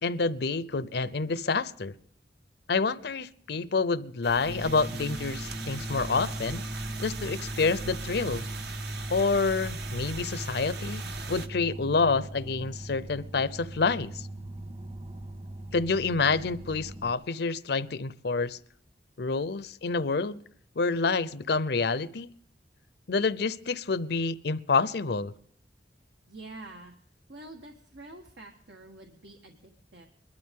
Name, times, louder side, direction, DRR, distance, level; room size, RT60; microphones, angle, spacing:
voice 1, 0.0-1.9 2.7-6.6 7.0-8.5 9.1-11.0 11.3-14.3 15.7-18.6 19.2-20.4 20.8-22.3 23.1-25.3, left 4 dB, 65° left, 0.7 m, -28 dB
sound 1, 4.2-11.5, right 4 dB, 65° right, 1.3 m, -40 dB
sound 2, 4.5-17.1, right 1 dB, 35° right, 1.5 m, -39 dB
voice 2, 26.3-27.0 27.3-30.1, right 2 dB, 80° right, 1.7 m, -47 dB
22.0 x 12.5 x 3.7 m
head